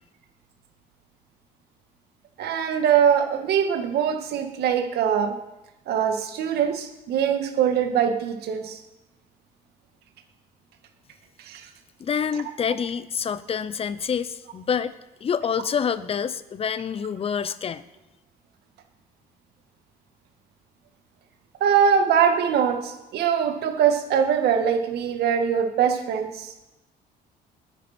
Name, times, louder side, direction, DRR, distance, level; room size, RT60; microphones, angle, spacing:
voice 1, 2.4-5.3 5.9-8.8 11.4-11.7 21.6-26.5, right 8 dB, 70° right, 5 dB, 2.0 m, -22 dB
voice 2, 12.0-14.9 15.2-17.8, left 7 dB, 35° left, 15 dB, 0.8 m, -27 dB
20.5 x 10.0 x 4.5 m, 0.96 s
cardioid pair, 110°, 17 cm